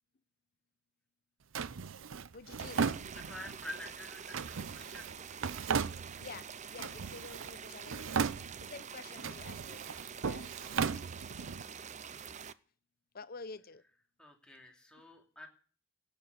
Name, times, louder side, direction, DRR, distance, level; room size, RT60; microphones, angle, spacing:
Drawer open or close, 1.5-3.6 4.3-6.4 6.8-7.6 7.8-8.8 9.2-11.6, right 6 dB, 90° right, 0.6 m, -36 dB
voice 1, 2.3-3.0 6.2-10.5 13.1-13.8 15.0-15.1, left 4 dB, 50° left, 15 dB, 0.8 m, -49 dB
sound 1, 2.6-12.5, right 7 dB, 40° right, 0.6 m, -47 dB
voice 2, 3.1-5.1 14.2-15.5, left 1 dB, 5° left, 1 dB, 2.7 m, -48 dB
17.0 x 7.3 x 7.9 m, 0.43 s
head